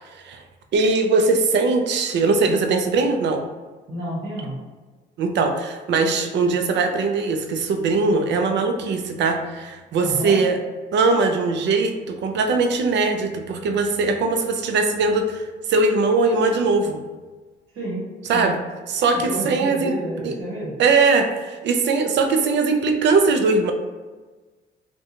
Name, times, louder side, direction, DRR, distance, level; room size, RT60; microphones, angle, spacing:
voice 1, 0.7-3.4 5.2-10.6 10.9-15.4 15.7-17.0 18.3-18.6 18.9-19.9 20.2-20.3 20.8-23.7, right 3 dB, 65° right, 5 dB, 0.4 m, -20 dB
voice 2, 3.9-4.6 10.0-10.4 17.7-18.5 19.3-20.7, right 1 dB, 85° right, -7 dB, 1.1 m, -30 dB
2.7 x 2.2 x 2.8 m, 1.3 s
cardioid pair, 90°, 20 cm